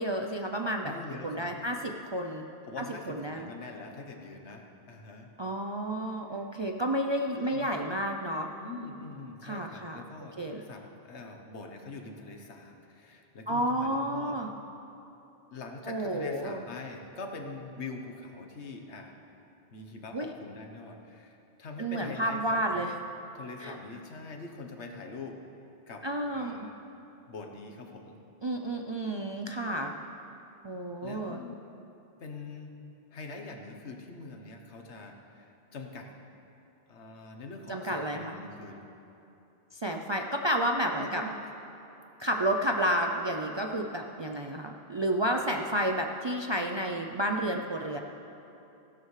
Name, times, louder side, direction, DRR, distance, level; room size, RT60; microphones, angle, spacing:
voice 1, 0.0-0.9 1.2-2.4 2.8-3.5 5.4-8.5 9.4-10.0 10.4-10.6 13.5-14.5 15.9-16.6 20.1-20.3 21.8-22.9 23.6-23.8 26.0-26.6 28.4-29.9 30.6-31.4 37.7-38.4 39.7-41.2 42.2-48.0, right 1 dB, 40° right, 2 dB, 0.4 m, -31 dB
voice 2, 0.8-1.7 2.6-5.3 6.3-6.4 7.3-7.7 8.6-14.4 15.5-19.1 19.7-22.9 23.3-25.4 25.9-26.1 26.3-26.7 27.3-28.2 31.0-31.6 32.2-32.7 33.1-36.1 36.9-38.8 41.0-41.4, left 3 dB, 90° left, 3 dB, 1.3 m, -44 dB
15.5 x 12.0 x 3.2 m, 2.9 s
omnidirectional pair, 1.1 m